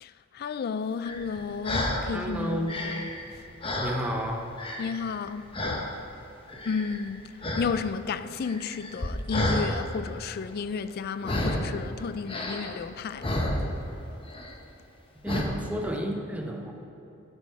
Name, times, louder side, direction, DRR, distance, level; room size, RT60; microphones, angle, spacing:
voice 1, 0.0-3.0 4.8-5.5 6.7-7.3 7.6-13.3, left 5 dB, 50° left, 0.3 m, -32 dB
sound 1, 1.0-2.1 2.5-4.3 4.6-5.2 5.5-5.9 6.5-7.1 7.4-7.7 8.0-9.7 11.2-11.8 12.3-14.0 14.3-14.6 15.3-15.4, left 1 dB, 25° left, 0.8 m, -31 dB
voice 2, 2.1-2.8 3.8-4.8 15.2-16.7, equal, 5° right, 0.7 m, -32 dB
12.0 x 5.3 x 4.7 m
head